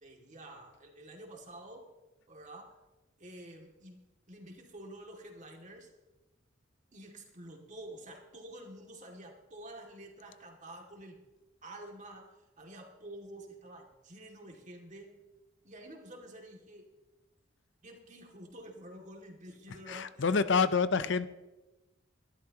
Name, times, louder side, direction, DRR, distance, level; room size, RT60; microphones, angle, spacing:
voice 1, 0.0-1.9 2.3-2.8 3.2-4.0 4.3-5.9 6.9-11.2 11.6-15.2 15.6-16.9 17.8-20.2, right 1 dB, 40° right, 1 dB, 2.4 m, -49 dB
voice 2, 19.7-21.3, left 5 dB, 65° left, 14 dB, 0.6 m, -28 dB
24.0 x 12.5 x 3.0 m, 1.0 s
head